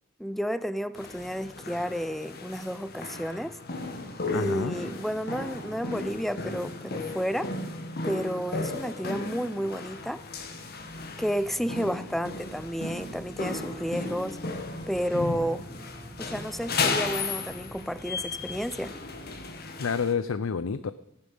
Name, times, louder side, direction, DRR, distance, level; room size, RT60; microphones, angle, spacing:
voice 1, 0.2-3.6 4.3-7.5 8.0-10.2 11.2-14.4 14.9-15.7 16.2-19.0, equal, ahead, 0.5 m, -31 dB
sound 1, 0.9-20.1, left 3 dB, 50° left, 1.6 m, -35 dB
voice 2, 4.3-4.8 19.8-20.9, left 5 dB, 85° left, 0.5 m, -29 dB
sound 2, 10.0-19.5, right 1 dB, 25° right, 1.4 m, -49 dB
17.5 x 9.8 x 5.5 m
head